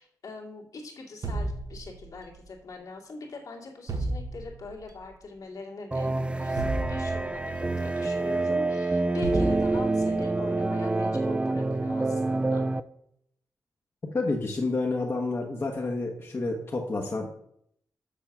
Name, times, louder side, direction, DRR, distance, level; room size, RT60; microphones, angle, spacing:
voice 1, 0.0-12.7, left 3 dB, 65° left, -1 dB, 2.3 m, -42 dB
sound 1, 1.2-2.4 3.9-4.8 6.6-7.7 9.2-10.2, right 2 dB, 60° right, 1.1 m, -33 dB
sound 2, 5.9-12.8, right 2 dB, 15° right, 0.4 m, -27 dB
voice 2, 14.1-17.3, left 3 dB, 40° left, 0 dB, 1.2 m, -29 dB
7.1 x 6.7 x 5.9 m, 0.71 s
wide cardioid pair, 120°, 7 cm